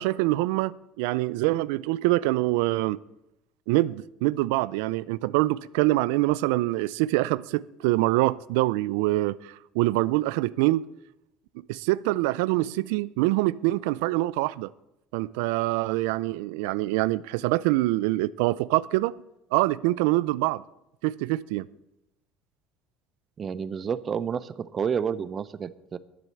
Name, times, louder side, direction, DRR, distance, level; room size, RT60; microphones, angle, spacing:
voice 1, 0.0-3.0 3.7-10.9 11.6-14.7 15.1-19.1 19.5-20.6 21.0-21.6, right 18 dB, 90° right, 0.4 m, -25 dB
voice 2, 23.4-26.0, right 7 dB, 30° right, 0.5 m, -30 dB
11.5 x 7.3 x 8.3 m
cardioid pair, 150°, 0 cm